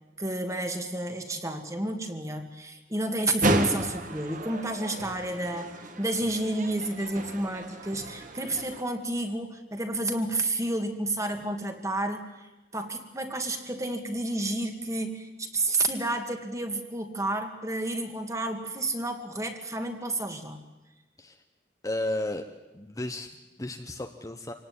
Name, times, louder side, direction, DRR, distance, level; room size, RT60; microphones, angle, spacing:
voice 1, 0.2-5.7 6.0-20.6, right 2 dB, 20° right, 6 dB, 2.2 m, -31 dB
sound 1, 3.4-8.8, right 2 dB, 45° right, 2.0 m, -32 dB
voice 2, 21.8-22.4 22.7-24.5, left 1 dB, 20° left, 5 dB, 1.2 m, -33 dB
26.0 x 18.5 x 9.7 m, 1.1 s
head